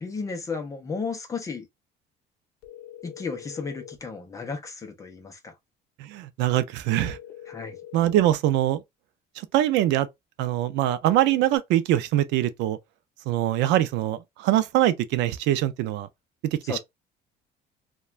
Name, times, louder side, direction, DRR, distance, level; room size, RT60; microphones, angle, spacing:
voice 1, 0.0-1.7 3.0-5.5 7.5-7.8 16.6-16.8, left 4 dB, 15° left, 0.5 m, -34 dB
sound 1, 2.6-4.0 6.9-8.3 11.1-11.6, left 11 dB, 60° left, 0.6 m, -44 dB
voice 2, 6.0-7.2 7.9-8.8 9.5-10.1 10.4-12.8 13.3-16.1 16.4-16.8, right 13 dB, 75° right, 0.4 m, -23 dB
2.4 x 2.2 x 2.9 m
cardioid pair, 175°, 19 cm